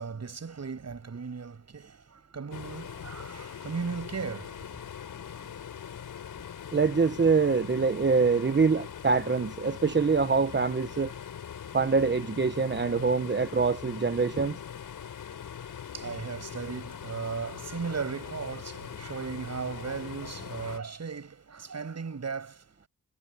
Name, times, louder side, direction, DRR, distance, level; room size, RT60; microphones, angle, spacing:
voice 1, 0.0-4.8 15.9-22.9, right 5 dB, 55° right, 7.1 m, -37 dB
sound 1, 2.5-20.8, left 8 dB, 80° left, 5.8 m, -42 dB
voice 2, 6.7-11.1 11.7-14.6, right 4 dB, 35° right, 1.2 m, -25 dB
cardioid pair, 60°, 33 cm